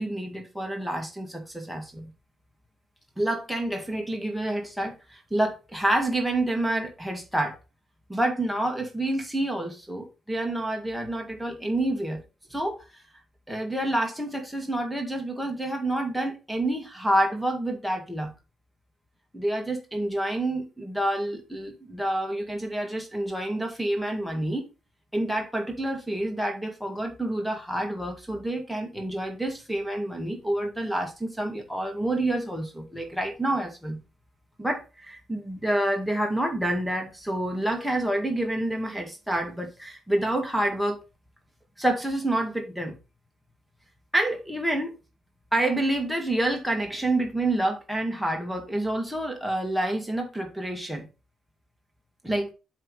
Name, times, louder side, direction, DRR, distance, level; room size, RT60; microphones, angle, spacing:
voice 1, 0.0-2.1 3.2-7.6 8.1-12.2 12.5-13.0 13.5-18.3 19.3-24.7 25.1-34.0 34.6-41.0 41.8-43.0 44.1-45.0 45.5-51.1 52.2-52.5, right 1 dB, ahead, 2.0 m, -28 dB
7.6 x 3.5 x 4.8 m
cardioid pair, 90°, 0 cm